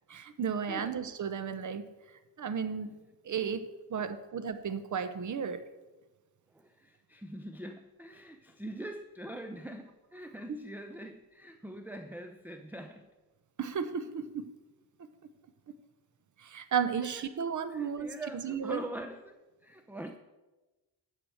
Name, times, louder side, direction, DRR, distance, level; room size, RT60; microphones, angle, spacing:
voice 1, 0.1-1.9 2.4-5.6 13.6-14.5 16.4-18.1 18.4-18.8, right 7 dB, 45° right, 11 dB, 0.9 m, -34 dB
voice 2, 0.7-1.0 6.5-13.1 17.0-17.2 17.7-20.2, right 1 dB, 5° right, 7 dB, 0.6 m, -43 dB
12.0 x 4.9 x 7.8 m, 1.1 s
cardioid pair, 95°, 42 cm